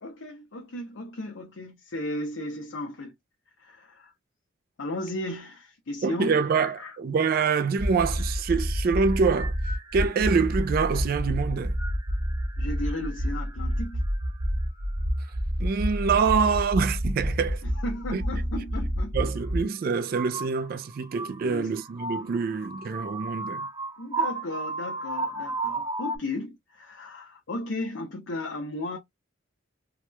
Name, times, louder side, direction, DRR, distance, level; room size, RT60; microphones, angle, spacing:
voice 1, 0.0-3.1 3.6-4.1 4.8-7.0 12.6-14.0 17.6-19.3 21.4-21.7 24.0-29.0, left 1 dB, 75° left, 0.7 m, -35 dB
voice 2, 6.0-9.5 9.9-11.7 15.6-17.6 18.1-18.2 18.6-18.7 19.1-23.7, right 5 dB, 50° right, 0.3 m, -25 dB
sound 1, 7.8-19.6 20.1-26.2, equal, 20° right, 0.7 m, -29 dB
2.9 x 2.2 x 2.9 m
head